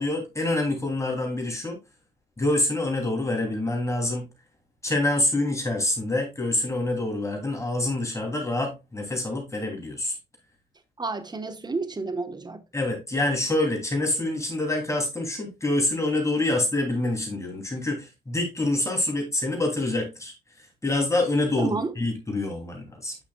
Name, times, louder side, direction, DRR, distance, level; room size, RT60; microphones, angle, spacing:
voice 1, 0.0-1.8 2.4-4.3 4.8-10.2 12.7-23.2, left 2 dB, 15° left, 3.0 m, -26 dB
voice 2, 11.0-12.6 21.6-21.9, right 3 dB, 20° right, 1.2 m, -30 dB
9.2 x 5.8 x 2.3 m
cardioid pair, 90°, 20 cm